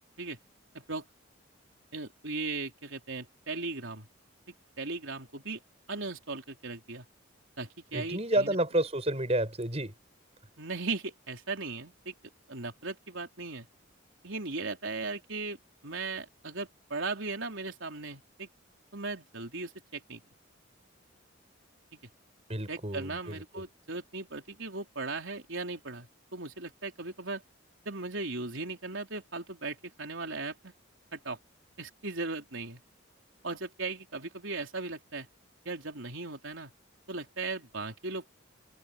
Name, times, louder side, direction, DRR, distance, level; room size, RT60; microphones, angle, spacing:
voice 1, 1.9-4.1 4.8-5.6 5.9-7.1 7.6-8.6 10.6-12.1 12.5-13.7 14.2-15.6 15.8-18.5 18.9-20.2 21.9-22.0 22.7-27.4 27.9-30.7 31.1-31.4 31.8-32.8 33.4-35.3 35.7-36.7 37.1-38.3, right 3 dB, 70° right, 3.7 m, -37 dB
voice 2, 7.9-9.9 22.5-23.6, right 1 dB, 30° right, 6.4 m, -30 dB
head